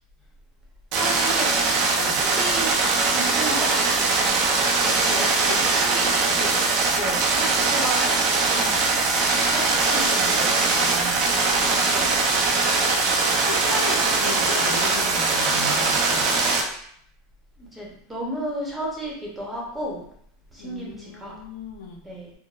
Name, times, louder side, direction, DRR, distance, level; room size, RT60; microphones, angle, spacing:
voice 1, 0.9-1.7 2.1-2.7 3.0-4.4 5.0-5.3 5.6-6.6 6.9-8.2 8.5-11.2 11.6-12.7 13.1-13.5 17.6-20.1 20.5-21.4 22.0-22.3, right 1 dB, 10° right, -3 dB, 1.0 m, -34 dB
sound 1, 0.9-16.6, right 3 dB, 50° right, 0.6 m, -21 dB
voice 2, 4.8-6.4 11.3-12.5 13.4-16.4 20.6-22.0, left 3 dB, 90° left, 1 dB, 0.6 m, -36 dB
3.9 x 2.1 x 2.4 m, 0.65 s
supercardioid pair, 135°, 0 cm